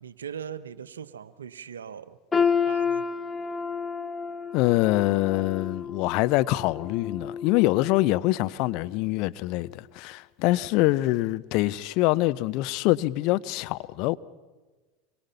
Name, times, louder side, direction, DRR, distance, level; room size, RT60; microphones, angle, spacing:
voice 1, 0.0-3.0 10.5-10.6, right 8 dB, 80° right, 0.8 m, -40 dB
sound 1, 2.3-8.3 8.7-8.9 9.6-9.7, left 6 dB, 20° left, 0.9 m, -30 dB
voice 2, 4.5-14.2, left 18 dB, 55° left, 0.7 m, -24 dB
24.5 x 22.5 x 5.7 m
hypercardioid pair, 80°, 0 cm